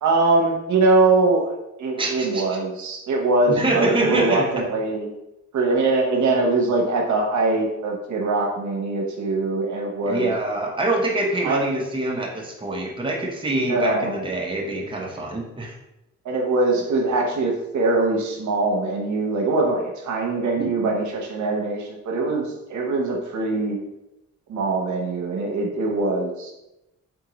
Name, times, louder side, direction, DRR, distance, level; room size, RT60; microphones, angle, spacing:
voice 1, 0.0-1.5 1.8-5.1 5.5-10.3 11.4-11.6 13.5-14.2 16.2-23.8 24.5-26.5, right 3 dB, 80° right, 0 dB, 0.9 m, -22 dB
voice 2, 2.0-2.4 3.5-4.4 10.0-15.7 20.6-20.7, right 2 dB, 15° right, -1 dB, 0.8 m, -25 dB
3.7 x 3.6 x 3.0 m, 0.92 s
cardioid pair, 95°, 29 cm